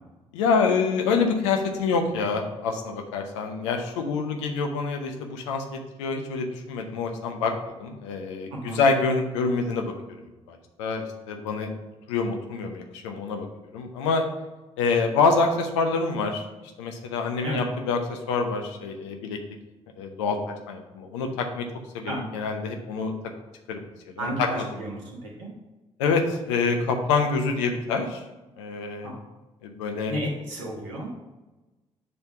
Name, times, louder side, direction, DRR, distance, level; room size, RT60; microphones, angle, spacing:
voice 1, 0.3-9.9 10.5-11.7 12.1-13.5 13.7-14.2 14.8-16.4 16.8-19.4 20.0-20.4 20.7-21.7 21.9-23.1 23.7-23.9 24.2-24.5 26.0-28.2 28.6-29.1 29.6-30.1, left 4 dB, 75° left, 4 dB, 0.7 m, -26 dB
voice 2, 8.5-8.8 17.4-17.6 22.1-22.2 24.2-25.5 29.0-29.2 30.1-31.1, right 1 dB, 75° right, -3 dB, 1.5 m, -32 dB
6.9 x 3.4 x 5.6 m, 1.1 s
figure-of-eight pair, 40°, 15 cm